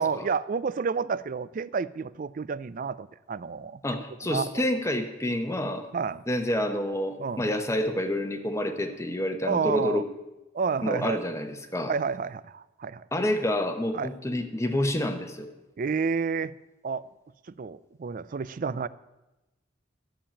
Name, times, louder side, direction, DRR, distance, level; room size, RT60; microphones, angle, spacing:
voice 1, 0.0-3.8 4.3-4.6 5.9-6.2 7.2-7.5 9.4-10.0 10.5-11.2 11.9-13.0 13.9-14.1 15.8-16.5 16.8-17.0 17.6-18.9, right 5 dB, 45° right, 18 dB, 0.4 m, -30 dB
voice 2, 3.8-5.9 6.3-10.0 10.8-11.9 13.1-15.5, left 1 dB, 15° left, 6 dB, 0.9 m, -28 dB
12.5 x 7.1 x 8.6 m, 1.0 s
head